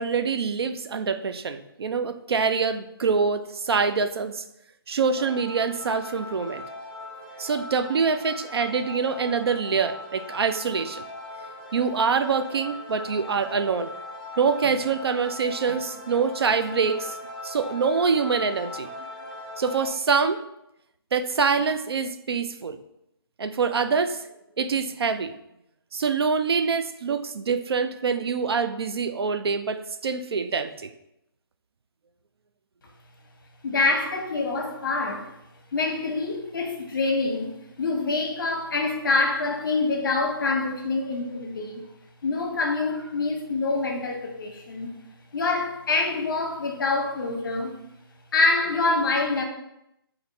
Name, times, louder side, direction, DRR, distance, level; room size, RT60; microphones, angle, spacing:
voice 1, 0.0-4.4 4.9-6.6 7.4-11.0 11.7-13.9 14.4-17.2 17.4-18.9 19.6-20.4 21.1-22.8 23.4-24.2 24.6-25.3 25.9-30.9, right 5 dB, 90° right, 0.4 m, -25 dB
sound 1, 5.1-19.9, left 2 dB, ahead, 0.4 m, -39 dB
voice 2, 33.6-35.3 35.7-37.5 37.8-41.8 42.2-44.9 45.3-47.7 48.3-49.4, left 3 dB, 55° left, 0.9 m, -25 dB
4.3 x 2.6 x 4.0 m
hypercardioid pair, 170°, 13 cm